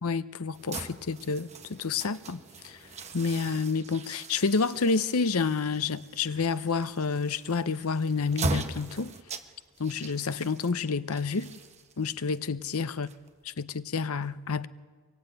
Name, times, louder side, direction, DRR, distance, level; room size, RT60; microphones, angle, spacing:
voice 1, 0.0-2.8 3.1-9.1 9.8-11.5 12.0-13.1 13.6-14.7, left 4 dB, 85° left, 0.8 m, -29 dB
sound 1, 0.5-13.6, right 3 dB, 30° right, 1.2 m, -40 dB
23.5 x 23.5 x 9.0 m
head